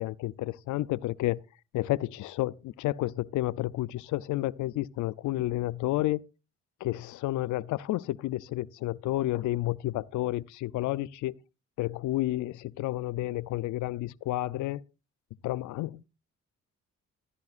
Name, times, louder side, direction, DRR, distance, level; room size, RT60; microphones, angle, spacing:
voice 1, 0.0-1.4 1.7-6.2 6.8-11.4 11.8-14.8 15.4-16.0, left 16 dB, 75° left, 0.5 m, -31 dB
14.5 x 11.5 x 2.4 m
cardioid pair, 90°, 30 cm